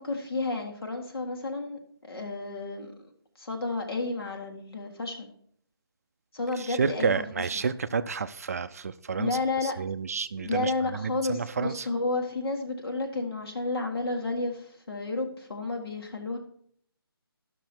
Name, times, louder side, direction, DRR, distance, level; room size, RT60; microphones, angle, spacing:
voice 1, 0.0-2.9 3.4-5.3 6.3-7.5 9.2-9.8 10.4-16.4, left 3 dB, 70° left, 2 dB, 1.8 m, -31 dB
voice 2, 6.6-11.9, right 5 dB, 40° right, 13 dB, 0.4 m, -30 dB
12.0 x 6.1 x 4.4 m, 0.62 s
figure-of-eight pair, 165°, 13 cm